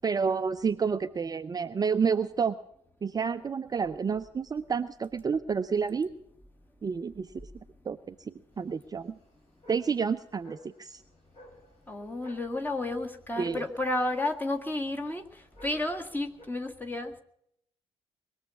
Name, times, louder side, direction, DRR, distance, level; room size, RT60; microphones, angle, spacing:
voice 1, 0.0-2.6 3.0-6.1 6.8-7.3 7.9-9.2 9.7-11.0 13.4-13.6, right 6 dB, 25° right, 11 dB, 0.6 m, -29 dB
sound 1, 8.5-16.5, left 1 dB, 45° left, 5.1 m, -56 dB
voice 2, 11.9-17.2, left 2 dB, 10° left, 4 dB, 1.9 m, -32 dB
21.0 x 7.2 x 9.6 m, 0.74 s
figure-of-eight pair, 45°, 15 cm